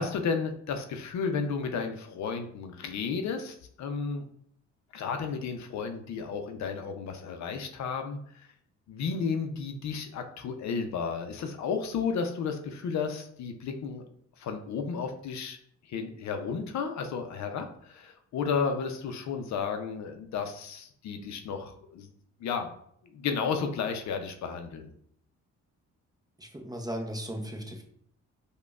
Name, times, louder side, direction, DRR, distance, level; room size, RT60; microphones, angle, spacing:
voice 1, 0.0-4.2 4.9-8.5 8.9-14.0 14.4-15.6 15.9-22.1 22.4-22.7 23.1-24.9, left 5 dB, 65° left, 6 dB, 0.5 m, -33 dB
voice 2, 26.4-27.8, equal, 15° right, 2 dB, 0.6 m, -36 dB
4.9 x 2.2 x 2.3 m, 0.66 s
cardioid pair, 90°, 30 cm